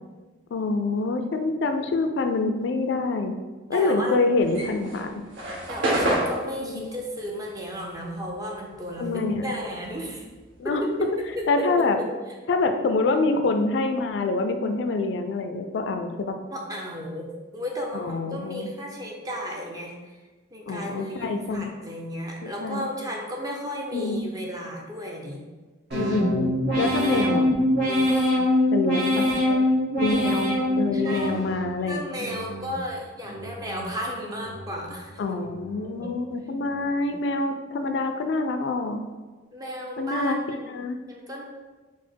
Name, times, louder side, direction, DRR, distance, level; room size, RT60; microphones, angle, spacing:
voice 1, 0.5-3.3 3.7-5.1 6.6-6.9 9.0-9.5 10.6-10.8 11.5-12.0 12.5-16.4 17.9-18.7 20.7-21.7 22.4-22.8 23.9-24.2 25.9-27.5 28.7-29.2 30.0-32.0 35.2-39.0 40.0-40.4 40.7-41.0, left 3 dB, 65° left, 7 dB, 0.3 m, -26 dB
voice 2, 3.7-4.2 5.7-10.3 10.6-11.7 12.0-12.1 16.5-19.9 20.5-25.4 29.3-29.6 30.9-31.4 31.8-35.4 36.0-36.1 39.5-40.7 41.0-41.4, equal, 20° right, -1 dB, 0.5 m, -34 dB
Mail in the mailslot, 4.4-9.1 9.4-11.4, right 1 dB, 80° right, 0.8 m, -29 dB
sound 1, 25.9-31.7 32.2-32.8 33.2-33.9 34.3-35.0 35.4-36.0 36.5-37.1, left 1 dB, 55° right, 1.3 m, -25 dB
4.2 x 2.1 x 4.5 m, 1.3 s
head